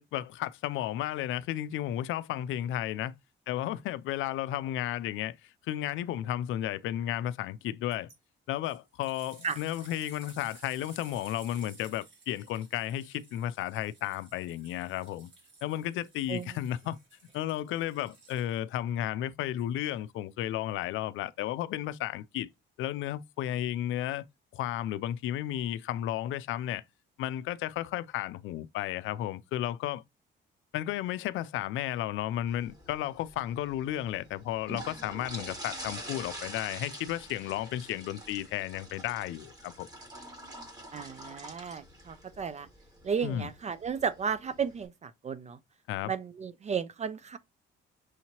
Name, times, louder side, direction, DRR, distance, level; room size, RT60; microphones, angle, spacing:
voice 1, 0.0-3.1 3.5-5.4 5.7-8.1 8.5-15.3 15.6-17.0 17.3-22.5 22.8-24.2 24.5-26.8 27.2-30.0 30.7-39.9 43.2-43.5 45.9-46.1, left 12 dB, 85° left, 0.4 m, -33 dB
sound 1, 7.9-8.2 8.6-18.8 19.6-19.7, right 4 dB, 70° right, 3.3 m, -56 dB
sound 2, 32.5-44.9, right 1 dB, 20° right, 1.6 m, -46 dB
voice 2, 40.9-42.7 43.0-45.6 46.0-47.4, right 6 dB, 35° right, 0.4 m, -34 dB
6.3 x 2.8 x 2.9 m
cardioid pair, 90°, 20 cm